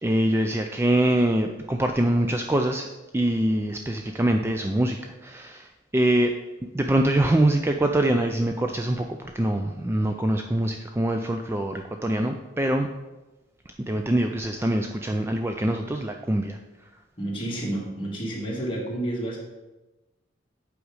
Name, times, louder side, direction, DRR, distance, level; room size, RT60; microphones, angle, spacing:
voice 1, 0.0-2.9 3.1-6.3 6.7-12.9 13.9-16.6, right 1 dB, 15° right, 4 dB, 0.3 m, -24 dB
voice 2, 17.2-19.4, right 1 dB, 25° left, -3 dB, 1.9 m, -30 dB
8.0 x 5.0 x 4.8 m, 1.1 s
head